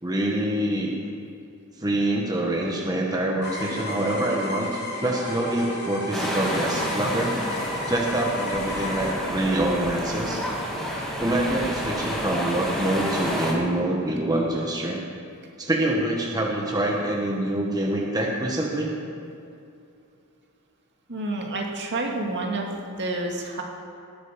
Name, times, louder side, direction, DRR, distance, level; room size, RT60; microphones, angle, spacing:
voice 1, 0.0-0.9 1.8-4.7 5.0-7.3 7.9-10.4 11.2-15.0 15.6-18.9, right 1 dB, 15° right, -2 dB, 1.5 m, -25 dB
sound 1, 3.4-9.1, left 2 dB, 50° left, 3.3 m, -33 dB
sound 2, 6.1-13.5, equal, ahead, 2.6 m, -29 dB
voice 2, 21.1-22.7 23.0-23.6, right 2 dB, 55° right, 0 dB, 2.3 m, -29 dB
19.5 x 12.0 x 5.2 m, 2.6 s
head